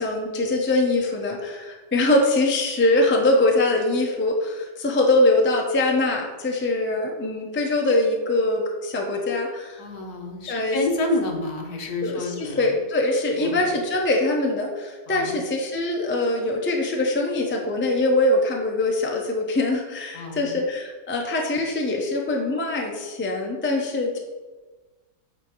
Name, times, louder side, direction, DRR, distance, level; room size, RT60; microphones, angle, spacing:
voice 1, 0.0-9.8 10.5-10.8 12.0-24.2, left 2 dB, 15° left, 0 dB, 0.4 m, -23 dB
voice 2, 9.8-12.7 13.4-13.7 15.1-15.4 20.1-20.6, left 2 dB, 65° left, 2 dB, 1.5 m, -29 dB
7.9 x 4.2 x 4.6 m, 1.3 s
omnidirectional pair, 1.9 m